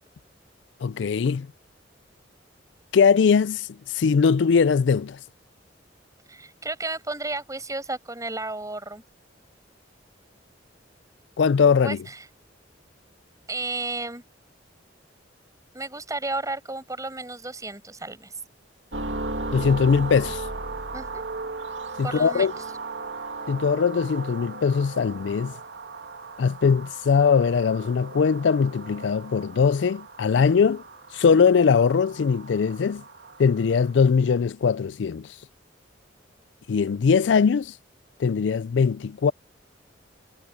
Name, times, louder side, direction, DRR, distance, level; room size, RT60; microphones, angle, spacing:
voice 1, 0.8-1.5 2.9-3.7 3.9-5.2 11.4-12.0 19.5-20.4 22.0-22.5 23.5-25.5 26.4-30.8 31.1-33.0 33.4-35.3 36.7-37.7 38.2-39.3, left 6 dB, 70° left, 0.4 m, -21 dB
voice 2, 6.3-9.0 11.8-12.3 13.5-14.2 15.7-18.3 20.9-21.2 22.0-22.5, right 2 dB, 20° right, 6.5 m, -33 dB
sound 1, 18.9-34.0, right 3 dB, 70° right, 2.8 m, -37 dB
head